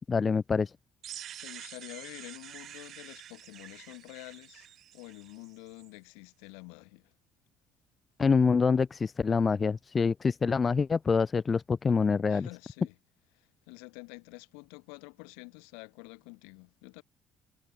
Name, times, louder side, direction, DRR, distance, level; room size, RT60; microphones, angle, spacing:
voice 1, 0.1-0.7 8.2-12.5, left 5 dB, 35° left, 0.8 m, -26 dB
sound 1, 1.0-5.9, right 11 dB, 60° right, 0.7 m, -47 dB
voice 2, 1.4-7.1 12.3-12.9 13.3-17.0, left 40 dB or more, 75° left, 1.6 m, -48 dB
hypercardioid pair, 50°, 0 cm